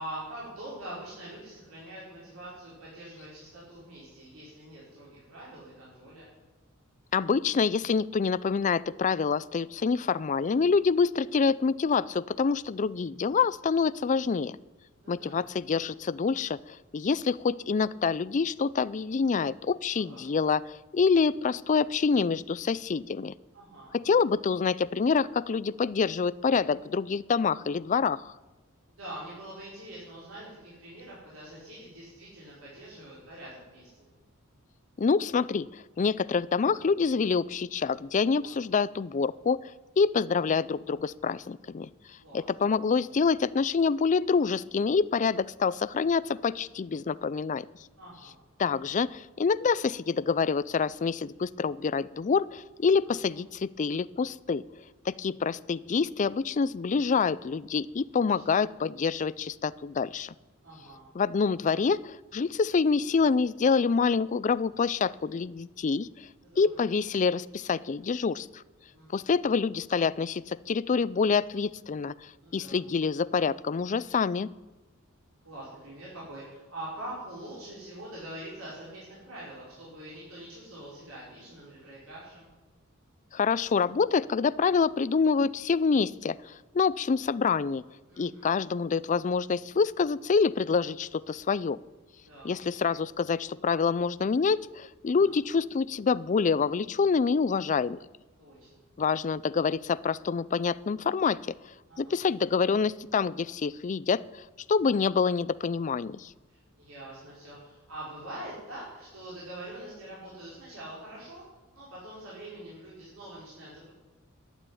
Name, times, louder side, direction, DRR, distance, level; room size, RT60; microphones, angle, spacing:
voice 1, 0.0-6.3 15.0-15.4 19.9-20.2 23.5-23.9 28.9-34.1 38.4-38.5 42.2-42.5 48.0-48.4 53.0-53.1 58.2-58.4 60.6-61.1 66.4-66.8 68.9-69.2 72.4-72.8 75.4-82.5 88.1-88.5 92.3-92.6 95.2-95.3 98.4-98.8 101.9-102.2 106.5-111.4 111.7-113.9, right 1 dB, 85° right, -7 dB, 5.2 m, -44 dB
voice 2, 7.1-14.6 15.1-23.3 23.9-28.3 35.0-39.6 40.0-41.9 42.3-47.7 48.6-54.6 55.1-60.3 61.1-66.1 66.6-68.6 69.1-72.1 72.5-74.5 83.3-87.8 88.2-91.8 92.4-98.0 99.0-101.4 102.0-106.3, left 5 dB, 35° left, 19 dB, 0.4 m, -26 dB
12.0 x 9.3 x 9.9 m, 1.2 s
head